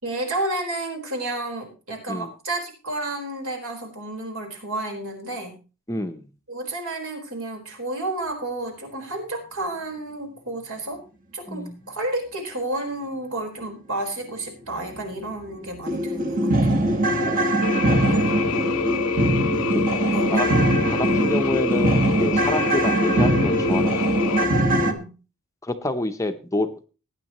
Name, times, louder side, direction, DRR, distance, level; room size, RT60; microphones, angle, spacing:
voice 1, 0.0-5.6 6.5-11.0 11.3-16.7 18.1-18.4 20.1-20.5 24.8-25.1, right 2 dB, 70° right, 2 dB, 4.3 m, -31 dB
voice 2, 5.9-6.3 11.5-11.8 17.3-17.5 18.6-18.7 19.7-20.5 20.9-24.6 25.6-26.9, left 2 dB, 15° left, 7 dB, 0.7 m, -29 dB
sound 1, 14.9-15.0 15.4-15.5 15.9-24.9, right 1 dB, 40° right, 1.4 m, -21 dB
sound 2, 17.6-24.4, left 5 dB, 90° left, 0.7 m, -27 dB
18.5 x 9.6 x 3.0 m, 0.32 s
head